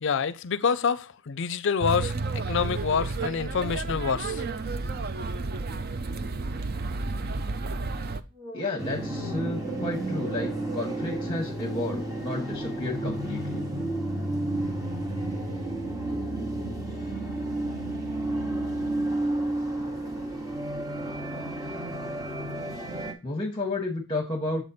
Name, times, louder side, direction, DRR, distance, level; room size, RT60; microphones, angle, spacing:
voice 1, 0.0-2.1 2.5-4.4, left 6 dB, 65° left, 0.5 m, -27 dB
sound 1, 1.8-8.2, right 3 dB, 50° right, 0.5 m, -31 dB
sound 2, 8.3-16.3, equal, 85° right, 2.3 m, -44 dB
voice 2, 8.5-13.6 23.2-24.6, left 2 dB, 25° left, 1.0 m, -32 dB
sound 3, 8.8-23.1, right 1 dB, 15° right, 1.2 m, -31 dB
7.3 x 5.1 x 4.1 m
head